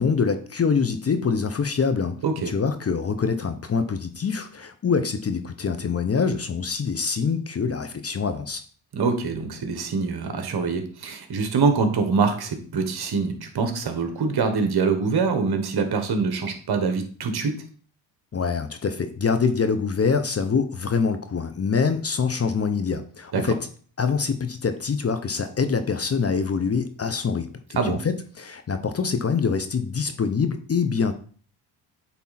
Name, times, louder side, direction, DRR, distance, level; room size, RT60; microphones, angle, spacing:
voice 1, 0.0-2.2 2.5-8.6 18.3-23.6 24.0-27.5 27.8-31.1, left 5 dB, 30° left, 9 dB, 0.8 m, -25 dB
voice 2, 2.2-2.5 8.9-17.5 23.3-23.5 27.7-28.0, right 4 dB, 50° right, 7 dB, 1.5 m, -24 dB
8.5 x 3.6 x 4.2 m, 0.43 s
cardioid pair, 80°, 48 cm